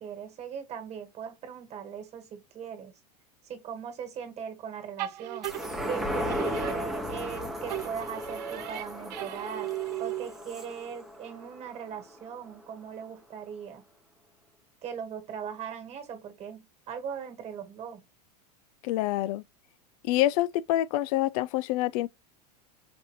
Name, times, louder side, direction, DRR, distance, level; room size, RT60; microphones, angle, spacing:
voice 1, 0.0-2.9 3.4-5.5 5.9-9.7 10.0-13.8 14.8-18.0, right 7 dB, 30° right, 1.6 m, -39 dB
sound 1, 5.0-7.4 7.7-10.5, right 15 dB, 85° right, 0.5 m, -37 dB
sound 2, 5.4-12.2 12.6-12.7, left 1 dB, ahead, 0.8 m, -35 dB
voice 2, 18.8-19.4 20.0-22.1, left 15 dB, 60° left, 0.4 m, -26 dB
5.1 x 2.5 x 3.1 m
supercardioid pair, 130°, 21 cm